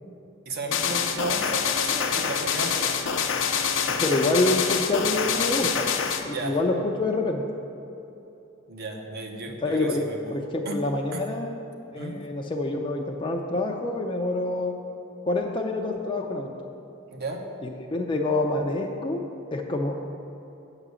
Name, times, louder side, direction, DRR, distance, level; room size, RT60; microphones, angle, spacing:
voice 1, 0.5-2.9 6.2-6.6 8.7-10.7 11.1-11.2 11.9-12.2 17.1-17.4, right 2 dB, 50° right, 2 dB, 1.0 m, -34 dB
sound 1, 0.7-6.2, left 7 dB, 70° left, 0.6 m, -26 dB
voice 2, 4.0-7.4 9.6-10.1 10.3-11.6 11.9-14.7 15.3-16.7 17.6-19.2 19.5-19.9, left 2 dB, 25° left, 0 dB, 0.5 m, -27 dB
8.1 x 4.9 x 6.8 m, 2.9 s
head